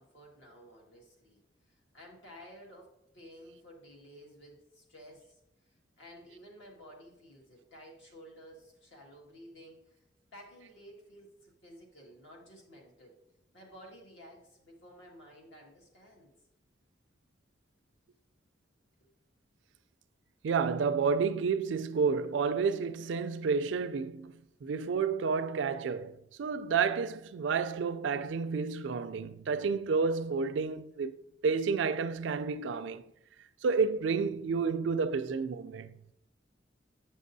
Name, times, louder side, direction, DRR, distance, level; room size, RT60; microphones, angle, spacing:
voice 1, 0.0-10.0 10.3-13.2 13.5-16.3, equal, 75° left, 1.8 m, -53 dB
voice 2, 20.4-24.3 24.6-31.1 31.4-33.0 33.6-35.9, right 5 dB, 75° right, 0.4 m, -30 dB
8.0 x 6.2 x 2.7 m
head